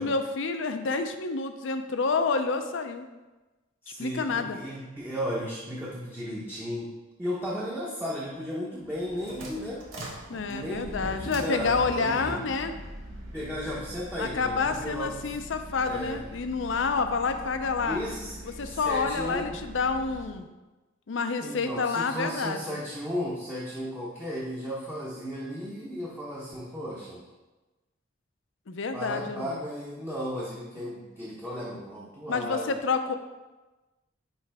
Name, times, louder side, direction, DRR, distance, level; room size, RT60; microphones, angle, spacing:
voice 1, 0.0-3.0 4.0-4.6 10.3-12.7 14.2-18.0 18.6-20.5 21.1-22.8 28.7-29.6 32.3-33.1, left 4 dB, 65° left, 8 dB, 0.5 m, -28 dB
voice 2, 3.8-6.9 7.2-9.8 10.5-12.4 13.3-15.3 15.8-16.2 17.8-19.6 21.4-27.2 28.9-32.7, equal, 10° right, -7 dB, 0.8 m, -35 dB
sound 1, 8.8-20.4, equal, 70° right, 1.4 m, -42 dB
9.7 x 3.2 x 3.4 m, 1.1 s
head